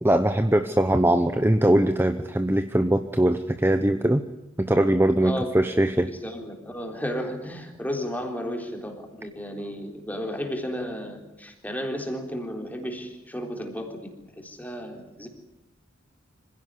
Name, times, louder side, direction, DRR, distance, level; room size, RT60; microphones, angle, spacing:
voice 1, 0.0-4.2 4.6-6.1, right 1 dB, 10° right, 8 dB, 0.9 m, -21 dB
voice 2, 5.2-5.5 6.1-14.1 14.4-15.3, equal, 10° left, 3 dB, 3.7 m, -33 dB
26.0 x 16.0 x 9.8 m, 0.95 s
head